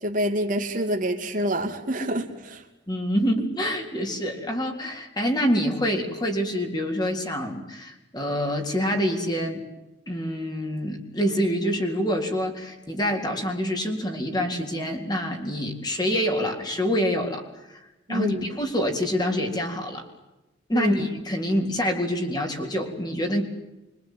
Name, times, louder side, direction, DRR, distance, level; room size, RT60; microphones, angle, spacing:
voice 1, 0.0-2.6 18.1-18.5 20.7-21.1, equal, 45° right, 4 dB, 2.7 m, -27 dB
voice 2, 2.9-9.6 10.1-17.8 18.1-20.0 20.7-23.4, equal, 20° left, 3 dB, 4.0 m, -26 dB
26.5 x 24.5 x 9.4 m, 1.0 s
head